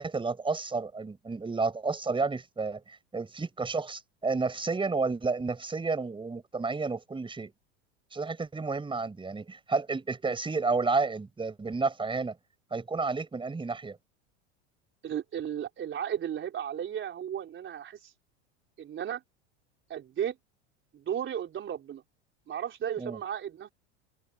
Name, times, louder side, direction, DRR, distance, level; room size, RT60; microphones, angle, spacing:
voice 1, 0.0-7.5 8.1-12.4 12.7-14.0 23.0-23.2, right 4 dB, 15° right, 5.4 m, -31 dB
voice 2, 15.0-18.1 18.8-19.2 19.9-20.4 20.9-22.0 22.5-23.7, right 9 dB, 35° right, 4.2 m, -34 dB
hypercardioid pair, 100°, 35 cm